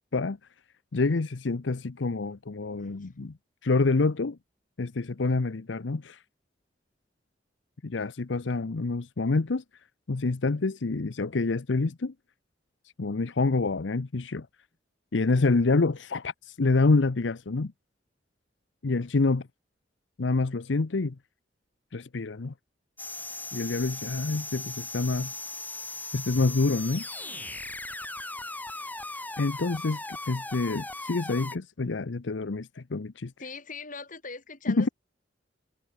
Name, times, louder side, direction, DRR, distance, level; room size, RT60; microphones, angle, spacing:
voice 1, 0.9-3.3 3.6-4.4 4.8-6.2 7.8-9.6 10.1-12.1 13.0-14.5 15.1-17.7 18.8-19.5 20.2-21.1 21.9-22.5 23.5-25.3 26.1-27.0 29.4-30.0 30.3-33.3 34.7-34.9, left 3 dB, 90° left, 0.7 m, -27 dB
voice 2, 2.8-3.1 33.4-34.9, left 4 dB, 45° left, 7.5 m, -42 dB
sound 1, 23.0-31.6, left 2 dB, 10° left, 7.5 m, -38 dB
head